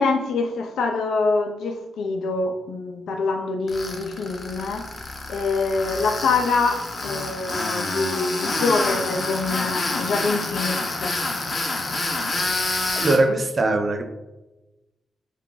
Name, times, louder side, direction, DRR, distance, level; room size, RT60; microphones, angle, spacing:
voice 1, 0.0-4.9 5.3-11.1, left 3 dB, 85° left, 4 dB, 0.5 m, -25 dB
Tools, 3.7-13.2, left 2 dB, 35° left, 0.6 m, -28 dB
voice 2, 12.9-14.0, right 2 dB, 35° right, 6 dB, 0.5 m, -20 dB
4.5 x 2.4 x 3.8 m, 1.0 s
wide cardioid pair, 135°, 0 cm